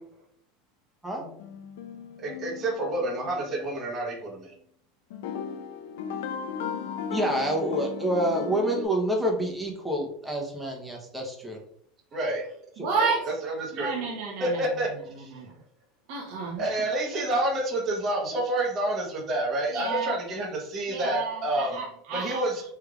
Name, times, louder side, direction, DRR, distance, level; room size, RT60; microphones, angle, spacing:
sound 1, 1.2-3.6 5.1-8.8, left 7 dB, 75° left, 0.4 m, -36 dB
voice 1, 2.2-4.5 12.1-12.4 13.0-13.1 13.4-13.9 14.4-14.9 15.2-15.3 16.6-21.8 22.1-22.6, right 1 dB, 35° right, 0 dB, 1.0 m, -28 dB
voice 2, 7.1-11.6, right 1 dB, 10° right, 1 dB, 0.9 m, -27 dB
voice 3, 12.8-13.3 13.7-14.6 15.1-15.5 16.1-16.9 19.7-20.1 20.9-22.5, right 5 dB, 60° right, -2 dB, 0.9 m, -31 dB
3.4 x 3.3 x 2.4 m, 0.69 s
supercardioid pair, 115°, 0 cm